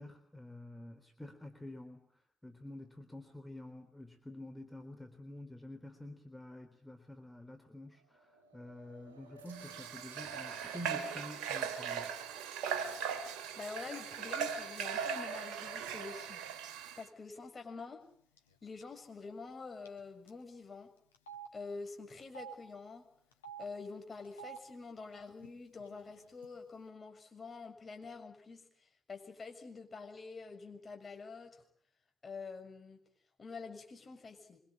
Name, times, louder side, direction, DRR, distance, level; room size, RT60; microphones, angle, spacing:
voice 1, 0.0-2.1 2.4-12.2, left 1 dB, 10° left, 7 dB, 3.9 m, -49 dB
sound 1, 7.9-11.3, right 2 dB, 85° right, 2.5 m, -58 dB
Water / Water tap faucet, 9.5-17.0, right 7 dB, 70° right, 2.4 m, -39 dB
voice 2, 13.6-16.4 17.0-18.0 18.6-20.9 21.5-23.0 23.6-28.6 29.1-31.6 32.2-33.0 33.4-34.6, left 4 dB, 35° left, 4 dB, 6.9 m, -47 dB
Telephone, 18.4-18.6 18.8-19.0 19.9-20.0 20.3-20.4 21.1-21.5 22.2-22.5 23.3-23.6 24.3-24.6 25.4-25.5 25.8-26.5, right 7 dB, 85° left, 2.0 m, -48 dB
25.5 x 24.0 x 8.8 m, 0.62 s
figure-of-eight pair, 45°, 0 cm